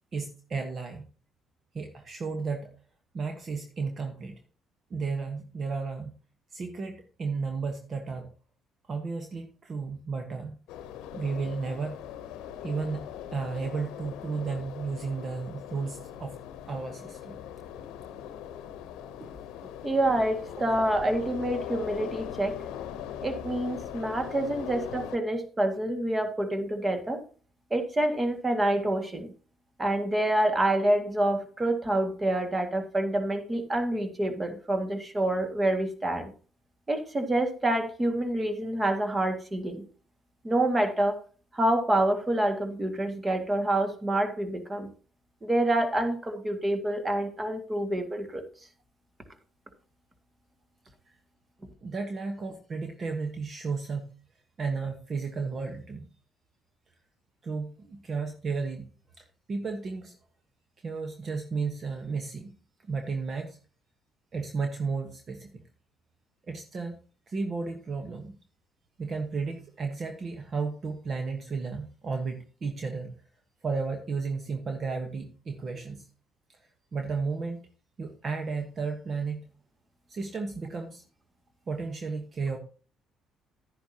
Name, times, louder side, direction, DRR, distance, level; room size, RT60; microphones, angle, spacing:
voice 1, 0.1-1.1 1.7-2.7 3.1-4.4 4.9-6.1 6.5-8.3 8.9-10.6 11.1-12.0 12.6-16.4 16.7-17.4 19.2-19.3 24.2-24.4 51.1-51.2 51.8-54.1 54.6-56.1 57.4-58.9 59.2-60.2 60.8-62.5 62.8-63.6 64.3-65.6 66.5-67.0 67.3-68.4 69.0-73.1 73.6-76.1 76.9-77.6 78.0-79.5 80.1-81.0 81.7-82.6, right 4 dB, 45° right, 5 dB, 1.3 m, -33 dB
sound 1, 10.7-25.2, left 10 dB, 85° left, 0.8 m, -40 dB
voice 2, 19.8-22.6 23.2-27.2 27.7-29.3 29.8-36.3 36.9-39.8 40.4-41.2 41.5-44.9 45.4-48.4, right 1 dB, 25° right, 6 dB, 2.0 m, -27 dB
11.0 x 10.5 x 2.9 m, 0.39 s
supercardioid pair, 75°, 0 cm